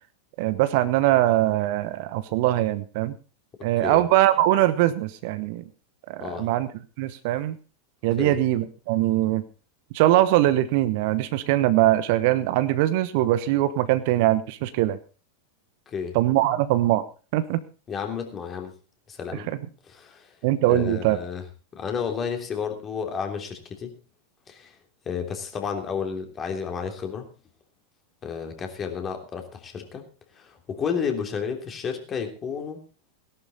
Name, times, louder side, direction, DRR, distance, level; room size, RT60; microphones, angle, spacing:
voice 1, 0.4-3.1 3.6-5.6 6.1-6.7 7.0-7.6 8.0-9.4 9.9-15.0 16.1-17.0 17.3-17.6 20.4-21.2, right 14 dB, 50° right, 13 dB, 1.0 m, -22 dB
voice 2, 17.9-18.7 19.1-19.5 19.9-20.3 20.7-21.4 21.7-23.9 24.5-24.7 25.0-27.3 28.2-30.0 30.3-32.8, left 6 dB, 25° left, 4 dB, 3.2 m, -31 dB
17.5 x 11.5 x 4.1 m, 0.35 s
figure-of-eight pair, 90°, 0 cm